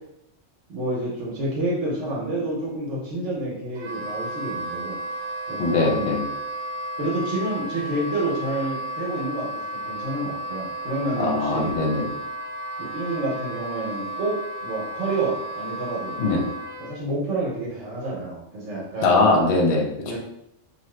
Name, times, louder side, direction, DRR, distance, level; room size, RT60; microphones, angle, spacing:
voice 1, 0.7-5.0 5.5-6.1 7.0-11.7 12.8-16.2 16.8-19.3 20.0-20.2, right 2 dB, 65° right, -5 dB, 1.1 m, -29 dB
Wind instrument woodwind instrument, 3.7-16.9, right 1 dB, 85° right, 0.4 m, -33 dB
voice 2, 5.6-6.2 11.2-12.1 16.2-16.4 19.0-20.2, left 3 dB, 60° left, 1 dB, 0.9 m, -21 dB
2.8 x 2.4 x 3.2 m, 0.79 s
omnidirectional pair, 1.4 m